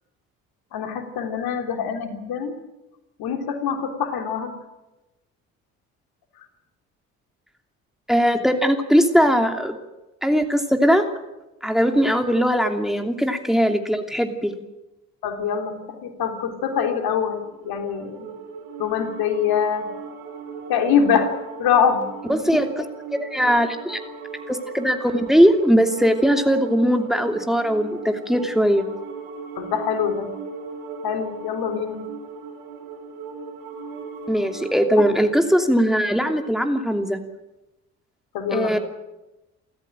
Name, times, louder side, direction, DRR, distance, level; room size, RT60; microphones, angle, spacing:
voice 1, 0.7-2.6 3.2-4.5 15.2-15.8 16.0-17.4 17.7-18.3 18.8-19.9 20.7-21.3 21.6-22.0 29.6-30.3 31.0-32.0 38.3-38.8, left 7 dB, 60° left, 5 dB, 3.5 m, -24 dB
voice 2, 8.1-9.8 10.2-11.1 11.6-14.5 22.3-22.8 23.1-24.0 24.5-28.8 34.3-37.2 38.5-38.8, equal, ahead, 5 dB, 2.8 m, -20 dB
sound 1, 17.3-34.9, right 5 dB, 75° right, 3.3 m, -37 dB
29.0 x 14.0 x 9.0 m, 1.0 s
hypercardioid pair, 50°, 42 cm